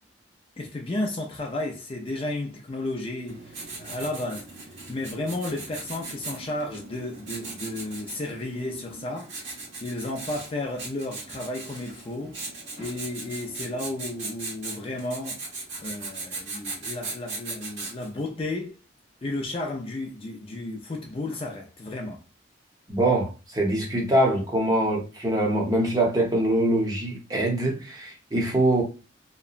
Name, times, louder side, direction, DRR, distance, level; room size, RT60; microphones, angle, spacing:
voice 1, 0.6-4.5 4.9-12.3 12.8-15.4 15.8-18.8 19.2-22.2, left 2 dB, 30° left, 0.4 m, -33 dB
Writing, 3.3-18.2, right 3 dB, 80° right, 1.2 m, -39 dB
voice 2, 22.9-28.8, right 1 dB, 20° right, 0.7 m, -23 dB
2.9 x 2.1 x 2.4 m
head